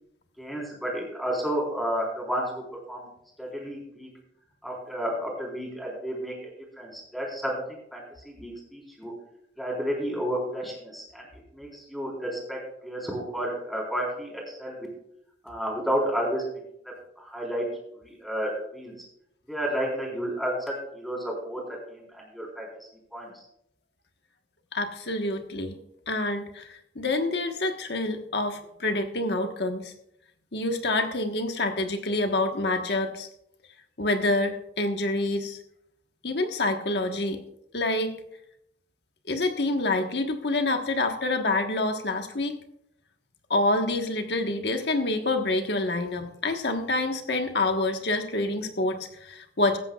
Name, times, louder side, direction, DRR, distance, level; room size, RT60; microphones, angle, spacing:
voice 1, 0.4-2.6 2.9-3.1 3.4-4.1 4.6-6.5 6.8-9.1 9.6-11.2 11.5-14.9 15.4-16.6 17.2-17.6 18.0-18.9 19.5-21.6 21.9-22.7 23.1-23.3, equal, ahead, -2 dB, 4.1 m, -31 dB
voice 2, 24.7-25.8 26.1-29.9 30.5-33.3 34.0-35.6 36.2-37.4 37.7-38.2 39.3-42.6 43.5-49.8, left 2 dB, 65° left, 5 dB, 1.4 m, -27 dB
16.0 x 14.0 x 2.4 m, 0.76 s
head